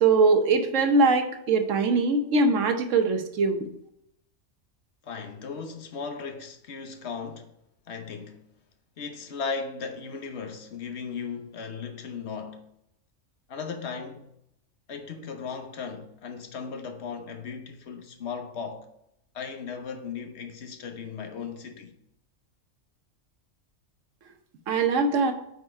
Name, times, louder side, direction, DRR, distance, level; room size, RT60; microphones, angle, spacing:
voice 1, 0.0-3.6 24.7-25.3, right 3 dB, 70° right, 1.2 m, -22 dB
voice 2, 5.0-7.5 7.9-8.4 9.0-12.7 13.5-14.3 14.9-18.9 19.3-21.9, left 5 dB, 60° left, 1.2 m, -36 dB
8.4 x 4.2 x 4.4 m
omnidirectional pair, 1.3 m